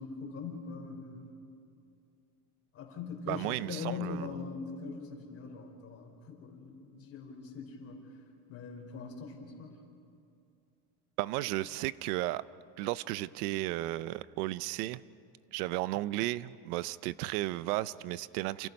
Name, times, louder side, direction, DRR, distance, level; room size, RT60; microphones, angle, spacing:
voice 1, 0.0-1.3 2.7-8.0 8.5-9.8, left 5 dB, 30° left, 1 dB, 4.2 m, -41 dB
voice 2, 3.3-4.3 11.2-12.4 12.8-15.0 15.5-18.7, right 17 dB, 85° right, 17 dB, 0.8 m, -34 dB
28.0 x 28.0 x 5.4 m, 2.5 s
cardioid pair, 165°, 44 cm